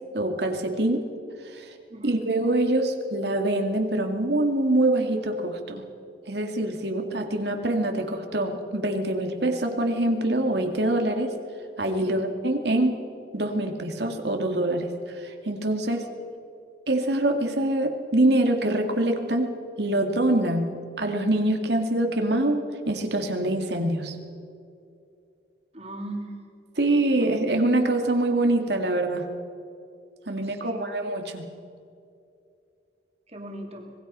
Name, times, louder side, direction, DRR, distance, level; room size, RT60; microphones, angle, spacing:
voice 1, 0.1-1.0 1.4-1.7 2.0-5.8 6.3-11.3 11.8-13.0 13.3-16.0 16.9-24.2 26.8-29.3 30.3-31.5, right 1 dB, 65° right, 4 dB, 2.2 m, -25 dB
voice 2, 25.7-26.3 27.1-27.3 30.3-30.8 33.3-33.9, right 1 dB, 35° right, 2 dB, 3.0 m, -39 dB
25.5 x 20.5 x 5.5 m, 2.5 s
head